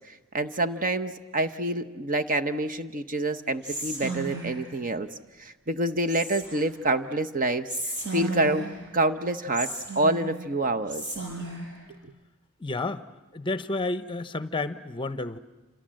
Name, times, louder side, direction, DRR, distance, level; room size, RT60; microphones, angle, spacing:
voice 1, 0.1-5.1 5.4-7.7 8.1-8.7 8.9-9.7 10.0-11.0, right 2 dB, 40° right, 10 dB, 0.9 m, -27 dB
Whispering, 3.6-4.7 6.1-6.8 7.7-8.9 9.5-10.5 10.9-11.7, right 2 dB, 55° right, 6.8 m, -34 dB
voice 2, 12.6-13.0 13.3-15.4, left 2 dB, 25° left, 13 dB, 0.8 m, -30 dB
28.0 x 27.5 x 7.6 m, 1.2 s
head